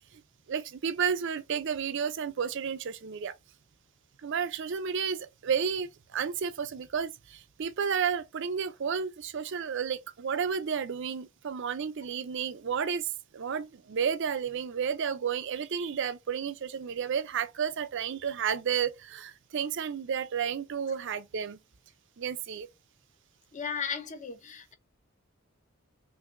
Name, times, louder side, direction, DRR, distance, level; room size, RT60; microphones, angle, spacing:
voice 1, 0.5-3.4 4.2-13.1 13.3-21.6 22.2-22.7, right 7 dB, 60° right, 0.5 m, -32 dB
voice 2, 23.5-24.7, left 6 dB, 35° left, 0.8 m, -35 dB
5.7 x 2.6 x 2.5 m
head